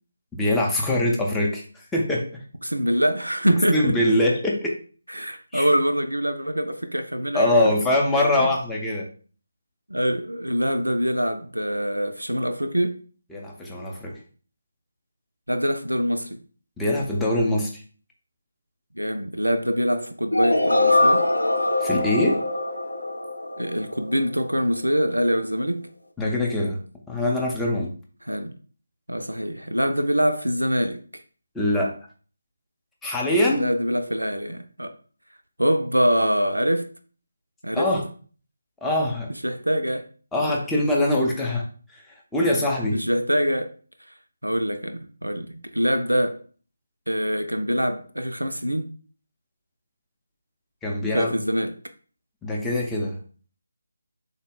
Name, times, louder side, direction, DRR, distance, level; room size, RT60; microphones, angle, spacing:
voice 1, 0.4-2.4 3.7-4.7 5.5-5.7 7.3-9.1 13.3-14.2 16.8-17.8 21.8-22.4 26.2-26.8 27.1-27.9 31.5-32.0 33.0-33.7 37.7-38.1 38.8-39.3 40.3-41.7 42.3-43.0 50.8-51.3 52.4-53.2, left 1 dB, 5° left, 0.5 m, -23 dB
voice 2, 2.6-4.2 5.1-7.7 8.2-8.5 9.9-13.0 15.5-16.4 19.0-21.3 23.6-25.9 28.3-28.5 29.1-31.2 33.5-35.0 35.6-36.9 37.6-37.9 39.4-40.1 40.5-40.6 42.9-43.7 44.4-46.4 47.1-48.9 51.1-51.7, equal, 85° right, 0.3 m, -24 dB
sound 1, 20.3-24.2, left 2 dB, 80° left, 0.5 m, -22 dB
3.5 x 2.0 x 3.6 m
figure-of-eight pair, 155°, 0 cm